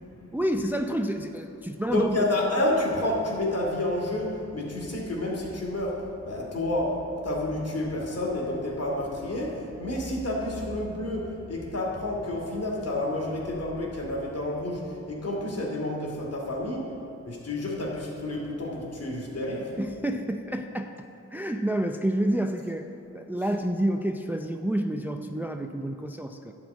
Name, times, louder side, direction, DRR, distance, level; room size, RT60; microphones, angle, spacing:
voice 1, 0.3-2.2 19.8-20.9 21.3-26.5, right 1 dB, 5° right, 5 dB, 0.5 m, -29 dB
voice 2, 1.9-17.0 17.3-19.8, left 1 dB, 50° left, -2 dB, 2.6 m, -29 dB
11.5 x 5.0 x 8.4 m, 2.8 s
cardioid pair, 55°, 31 cm